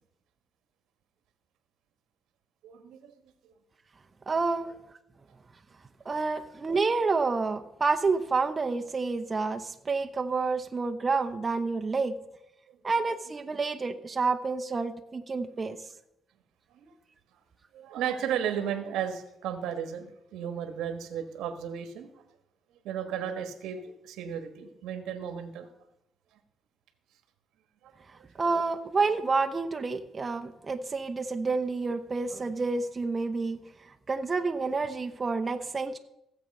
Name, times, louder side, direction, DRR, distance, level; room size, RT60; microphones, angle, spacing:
voice 1, 2.6-3.2 3.4-3.5 12.7-12.8 16.7-16.9 17.7-22.1 22.8-25.7 27.8-27.9 28.2-28.5, right 8 dB, 90° right, 8 dB, 1.4 m, -34 dB
voice 2, 4.3-4.7 6.0-12.2 12.8-15.8 28.4-33.6 34.1-36.0, right 4 dB, 30° right, 6 dB, 0.9 m, -29 dB
16.0 x 7.5 x 5.4 m, 0.82 s
cardioid pair, 90°, 0 cm